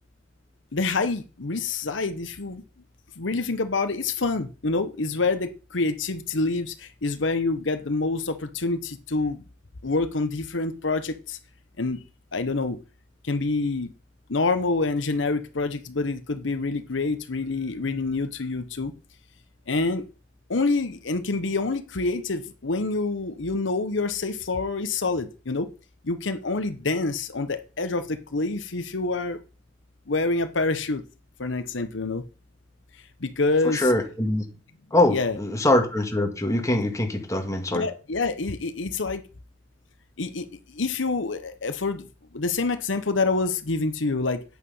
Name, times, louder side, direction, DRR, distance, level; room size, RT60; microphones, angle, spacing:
voice 1, 0.7-2.6 3.2-9.4 9.8-11.4 11.8-12.0 12.3-12.8 13.2-13.9 14.3-18.9 19.7-20.0 20.5-25.7 26.0-29.4 30.1-31.0 31.4-32.2 33.2-33.9 35.1-35.4 37.7-39.2 40.2-42.1 42.3-44.4, left 3 dB, 80° left, 1.0 m, -27 dB
voice 2, 33.7-34.4 34.9-37.9, left 1 dB, 15° left, 1.9 m, -23 dB
9.2 x 8.6 x 5.5 m
head